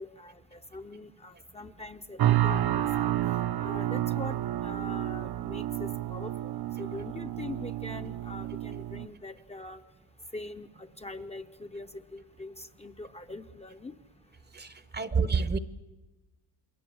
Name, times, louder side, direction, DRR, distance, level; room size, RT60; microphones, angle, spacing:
voice 1, 0.0-3.1 3.6-4.4 4.6-6.5 6.8-9.8 10.3-13.9, left 2 dB, 15° left, 6 dB, 0.8 m, -43 dB
sound 1, 2.2-9.1, right 13 dB, 60° right, 1.0 m, -30 dB
voice 2, 14.5-15.6, right 5 dB, 25° right, 15 dB, 0.9 m, -28 dB
28.5 x 21.5 x 7.8 m, 1.1 s
cardioid pair, 125°, 42 cm